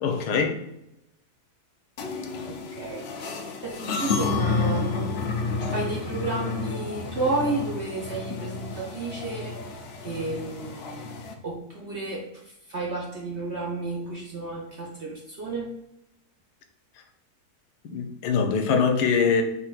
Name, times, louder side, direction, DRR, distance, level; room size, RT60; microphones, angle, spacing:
voice 1, 0.0-0.6 17.9-19.4, left 5 dB, 90° left, 1.2 m, -23 dB
sound 1, 2.0-11.3, left 4 dB, 65° left, 0.6 m, -31 dB
voice 2, 2.5-3.3 3.6-5.2 5.7-9.5 10.0-15.7, right 3 dB, 55° right, 0.8 m, -32 dB
5.9 x 3.3 x 2.4 m
omnidirectional pair, 1.7 m